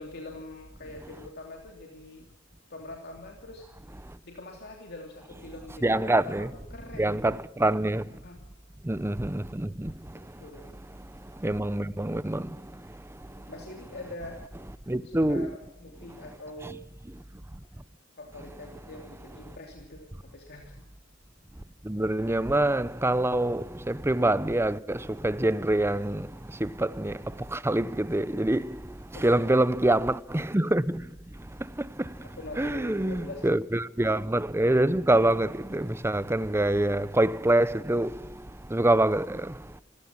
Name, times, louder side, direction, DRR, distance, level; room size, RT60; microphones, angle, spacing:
voice 1, 0.0-2.3 2.7-7.4 8.1-8.4 10.1-10.8 13.3-14.4 15.0-16.8 18.2-20.7 29.1-29.8 32.2-33.6, left 2 dB, 50° left, 3.0 m, -44 dB
voice 2, 5.8-6.5 7.0-8.1 8.8-10.4 11.2-13.0 13.3-13.4 14.9-15.5 21.8-31.1 31.4-32.3 32.6-39.8, right 1 dB, 10° right, 0.7 m, -26 dB
27.0 x 15.5 x 7.3 m
head